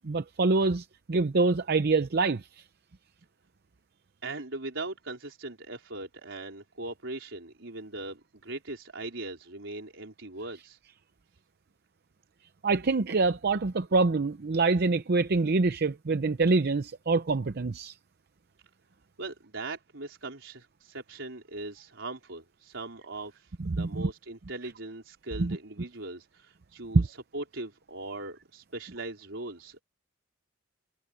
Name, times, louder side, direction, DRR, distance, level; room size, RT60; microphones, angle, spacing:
voice 1, 0.0-2.5 12.6-17.9 23.7-24.1 25.4-25.6 26.9-27.1, right 3 dB, 55° right, 0.6 m, -25 dB
voice 2, 4.2-10.8 19.2-29.8, right 2 dB, 75° right, 4.3 m, -40 dB
head